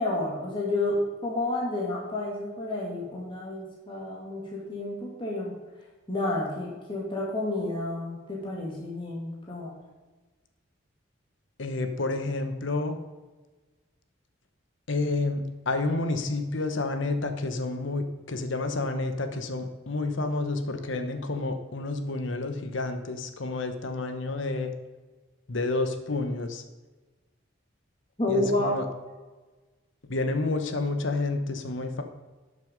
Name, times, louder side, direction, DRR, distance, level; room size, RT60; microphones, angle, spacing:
voice 1, 0.0-5.5 6.1-9.7 28.2-28.7, left 2 dB, 25° left, -4 dB, 2.1 m, -30 dB
voice 2, 11.6-13.0 14.9-24.7 25.5-26.6 28.3-28.9 30.0-32.0, left 2 dB, 70° left, 7 dB, 1.0 m, -29 dB
12.0 x 6.6 x 5.2 m, 1.3 s
head